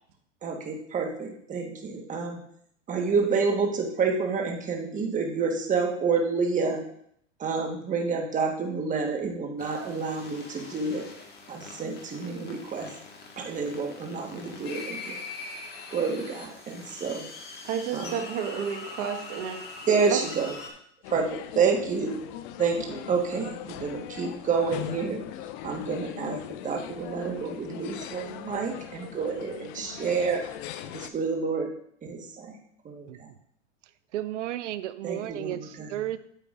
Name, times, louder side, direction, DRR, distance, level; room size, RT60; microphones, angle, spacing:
voice 1, 0.4-2.4 2.9-6.8 7.4-11.0 11.5-12.9 13.4-15.2 15.9-17.3 17.9-18.2 19.9-20.5 21.1-22.1 22.6-25.3 25.6-30.4 30.9-31.7 32.0-32.6 32.8-33.3 35.0-36.0, right 5 dB, 20° right, 2 dB, 1.4 m, -29 dB
sound 1, 9.6-20.7, left 3 dB, 25° left, 1.7 m, -43 dB
voice 2, 17.6-19.7 20.1-20.3, right 8 dB, 45° right, 3 dB, 1.6 m, -31 dB
sound 2, 21.0-31.1, left 11 dB, 45° left, 0.5 m, -40 dB
voice 3, 34.1-36.2, right 13 dB, 75° right, 14 dB, 0.6 m, -33 dB
8.9 x 8.3 x 2.5 m, 0.68 s
hypercardioid pair, 120°, 36 cm